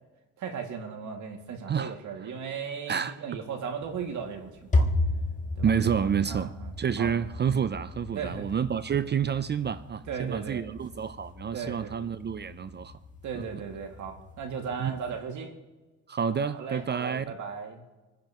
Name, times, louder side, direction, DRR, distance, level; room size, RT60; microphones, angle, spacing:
voice 1, 0.4-4.9 5.6-5.7 6.3-7.1 8.1-8.5 10.1-10.6 11.5-11.9 13.2-15.5 16.5-17.8, right 6 dB, 75° right, 2.3 m, -36 dB
sound 1, 3.8-15.2, left 2 dB, 25° left, 1.6 m, -34 dB
voice 2, 5.6-6.5 6.8-13.0 13.3-13.6 14.8-14.9 16.1-17.3, right 7 dB, 35° right, 0.5 m, -29 dB
27.5 x 10.5 x 3.0 m
cardioid pair, 90°, 30 cm